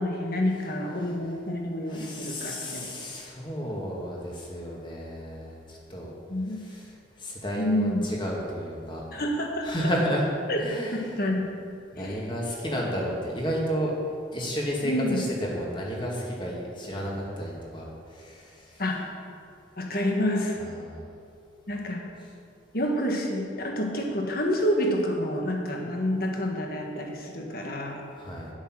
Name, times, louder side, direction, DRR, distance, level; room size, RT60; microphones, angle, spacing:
voice 1, 0.0-2.9 6.3-6.6 7.6-8.0 9.1-9.7 10.5-10.6 10.9-11.5 11.9-12.2 14.8-15.2 18.8-19.0 19.8-20.6 21.7-22.0 22.7-28.0, left 1 dB, 55° left, 1 dB, 1.7 m, -28 dB
voice 2, 1.9-6.1 6.6-6.9 7.2-9.0 9.6-10.3 10.6-11.0 12.0-13.9 14.3-18.8 20.6-21.1 22.2-22.3 28.1-28.5, equal, 25° left, -2 dB, 2.1 m, -32 dB
10.5 x 8.1 x 6.3 m, 2.5 s
head